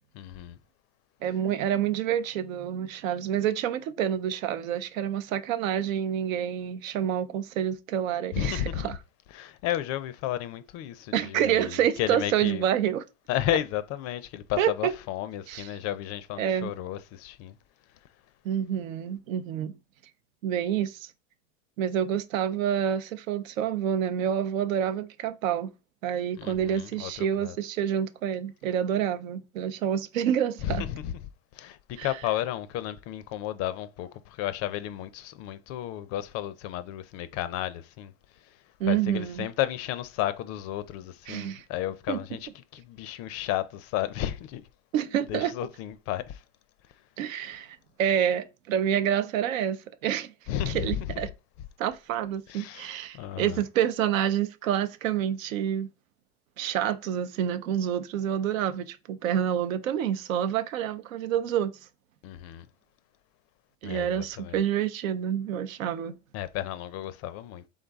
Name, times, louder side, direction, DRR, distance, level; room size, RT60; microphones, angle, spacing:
voice 1, 0.1-0.6 8.3-8.9 9.3-12.6 13.3-17.6 26.4-27.6 30.6-31.2 31.5-38.6 38.9-44.6 45.3-46.4 50.5-51.2 52.5-53.6 62.2-62.7 63.8-64.6 66.3-67.7, left 12 dB, 40° left, 0.4 m, -33 dB
voice 2, 1.2-8.9 11.1-13.0 14.6-14.9 15.5-15.7 16.4-16.7 18.4-19.7 20.4-21.1 21.8-25.7 26.0-30.8 32.0-32.1 38.8-39.5 41.3-41.6 42.1-42.2 44.9-45.5 47.2-50.3 50.7-51.3 51.8-55.9 56.6-61.7 63.8-66.2, right 9 dB, 80° right, 0.7 m, -28 dB
4.0 x 3.6 x 3.5 m
supercardioid pair, 125°, 40 cm